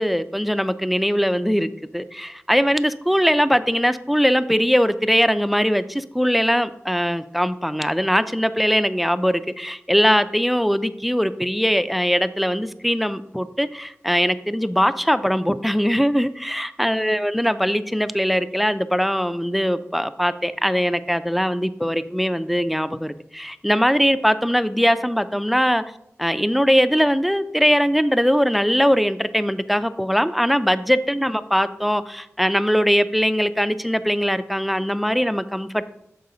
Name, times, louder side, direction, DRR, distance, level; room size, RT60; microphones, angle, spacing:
voice 1, 0.0-25.8 26.2-35.8, equal, ahead, 13 dB, 0.3 m, -21 dB
6.7 x 4.8 x 3.8 m, 0.80 s
wide cardioid pair, 45°, 5 cm